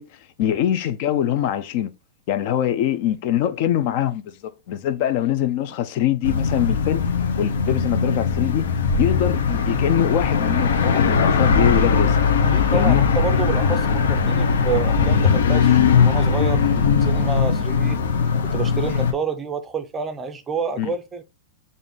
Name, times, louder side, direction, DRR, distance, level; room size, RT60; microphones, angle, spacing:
voice 1, 0.0-1.9 2.3-4.4 4.7-7.0 7.4-8.7 9.0-12.2 12.7-13.0 20.8-20.9, left 11 dB, 45° left, 0.4 m, -23 dB
sound 1, 6.2-19.1, left 5 dB, 85° left, 0.7 m, -19 dB
voice 2, 12.5-18.0 18.4-21.2, right 5 dB, 15° right, 0.5 m, -28 dB
3.6 x 2.5 x 3.9 m
supercardioid pair, 155°, 0 cm